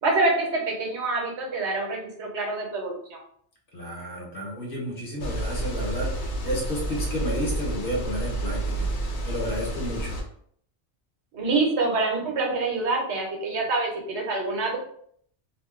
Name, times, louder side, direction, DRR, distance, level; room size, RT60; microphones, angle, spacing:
voice 1, 0.0-3.2 11.3-14.8, right 3 dB, 80° right, 0 dB, 1.1 m, -26 dB
voice 2, 3.7-8.9 9.2-10.2, equal, 55° left, -2 dB, 1.1 m, -31 dB
sound 1, 5.2-10.2, right 1 dB, 75° left, 1.0 m, -30 dB
2.5 x 2.2 x 3.6 m, 0.64 s
omnidirectional pair, 1.1 m